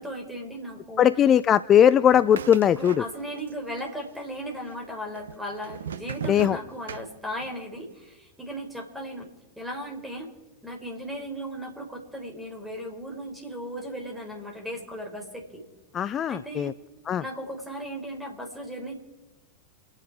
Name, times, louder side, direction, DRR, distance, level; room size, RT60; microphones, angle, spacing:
voice 1, 0.0-1.1 2.7-9.3 9.6-10.3 10.6-15.6 16.3-16.7 17.2-18.9, equal, 5° right, 1 dB, 4.5 m, -36 dB
voice 2, 1.0-3.0 6.3-6.6 15.9-16.7 17.1-17.2, left 9 dB, 25° left, 16 dB, 0.4 m, -19 dB
sound 1, 2.1-3.5 3.8-4.5 5.2-7.6, right 7 dB, 65° right, 0.8 m, -38 dB
28.5 x 9.8 x 4.8 m, 1.1 s
figure-of-eight pair, 90°, 0 cm